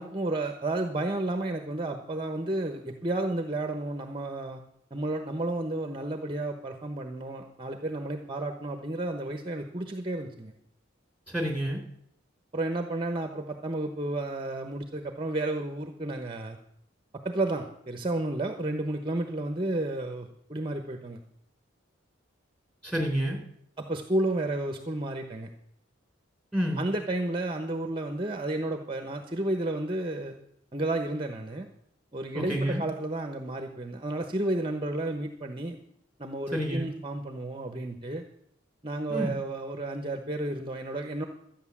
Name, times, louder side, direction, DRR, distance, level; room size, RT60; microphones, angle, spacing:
voice 1, 0.0-4.6 4.9-10.5 12.5-16.6 17.2-21.2 23.8-25.5 26.8-30.4 30.7-31.7 32.1-35.8 36.2-38.2 38.8-41.2, right 2 dB, 25° right, 5 dB, 1.0 m, -32 dB
voice 2, 11.3-11.8 22.8-23.4 26.5-26.8 32.3-32.8 36.5-36.9 39.1-39.4, equal, 5° left, 1 dB, 3.6 m, -29 dB
13.5 x 9.1 x 7.3 m, 0.73 s
head